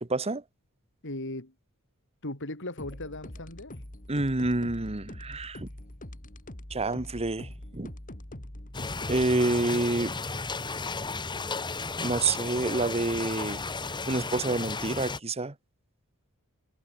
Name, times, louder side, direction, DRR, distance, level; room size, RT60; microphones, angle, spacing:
voice 1, 0.0-0.4 4.1-5.7 6.7-7.9 9.1-10.1 12.0-13.6 14.1-15.5, right 2 dB, 30° right, 1.2 m, -28 dB
voice 2, 1.0-1.5 2.2-3.7, left 1 dB, 55° left, 5.5 m, -37 dB
sound 1, 2.8-9.2, left 1 dB, 40° left, 2.8 m, -43 dB
sound 2, 8.7-15.2, left 4 dB, 20° left, 1.1 m, -34 dB
head